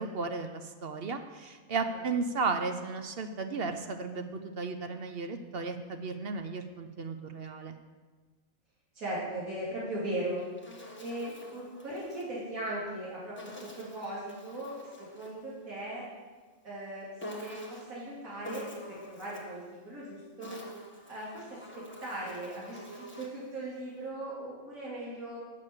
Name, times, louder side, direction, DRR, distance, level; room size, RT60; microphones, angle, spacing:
voice 1, 0.0-7.8, right 4 dB, 55° right, 7 dB, 0.7 m, -34 dB
voice 2, 8.9-10.4 11.0-14.8 15.1-16.0 16.6-17.1 17.4-20.6 21.1-21.6 22.0-25.4, right 1 dB, 80° right, -8 dB, 2.9 m, -38 dB
Insect, 10.1-12.3 13.4-15.4 17.2-18.0 18.4-19.6 20.2-23.5, left 1 dB, 10° left, 1.2 m, -47 dB
7.4 x 6.8 x 8.1 m, 1.4 s
omnidirectional pair, 1.5 m